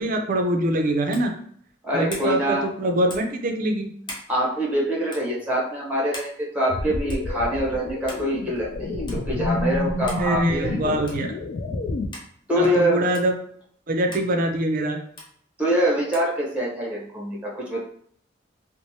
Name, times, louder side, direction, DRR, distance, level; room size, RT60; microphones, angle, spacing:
voice 1, 0.0-1.3 1.9-3.9 10.2-11.3 12.5-13.3 13.9-15.0, right 1 dB, 45° right, 4 dB, 0.5 m, -24 dB
sound 1, 1.1-1.3 2.1-2.3 3.1-3.4 4.0-4.3 5.1-5.3 6.1-6.4 7.1-7.3 8.1-8.3 9.1-9.2 10.1-10.3 11.1-11.3 12.1-12.3 13.1-13.3 14.1-14.3 15.2-15.3 16.1-16.3, left 1 dB, 25° left, 0.7 m, -38 dB
voice 2, 1.8-2.6 4.3-10.8 12.5-13.1 15.6-17.8, equal, 10° right, -3 dB, 0.8 m, -24 dB
sound 2, 6.7-12.1, left 2 dB, 45° left, 0.3 m, -29 dB
3.0 x 2.1 x 2.7 m, 0.62 s
head